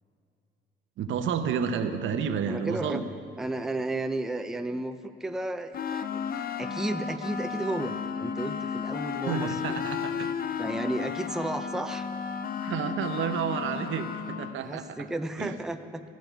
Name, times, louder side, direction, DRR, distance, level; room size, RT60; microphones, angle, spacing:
voice 1, 1.0-3.1 9.3-10.3 12.6-15.1 15.4-15.6, right 7 dB, 75° right, 8 dB, 0.8 m, -30 dB
voice 2, 2.5-3.0 3.4-9.8 10.6-12.1 14.6-16.0, right 2 dB, ahead, 7 dB, 0.5 m, -33 dB
sound 1, 5.7-14.6, left 7 dB, 50° left, 0.6 m, -33 dB
14.0 x 5.2 x 9.1 m, 2.6 s
cardioid pair, 90°, 20 cm